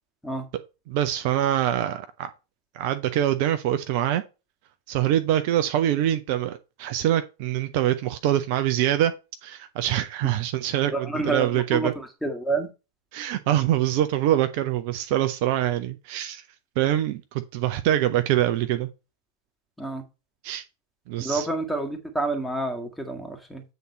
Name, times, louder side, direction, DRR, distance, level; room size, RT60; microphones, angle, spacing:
voice 1, 0.9-2.3 2.7-4.2 4.9-9.1 9.4-11.9 13.1-16.4 16.8-18.9 20.4-20.6 21.1-21.5, right 12 dB, 45° right, 0.6 m, -24 dB
voice 2, 10.9-12.7 19.8-20.0 21.2-23.6, right 2 dB, 5° left, 1.9 m, -29 dB
8.2 x 3.9 x 5.4 m
figure-of-eight pair, 90°, 0 cm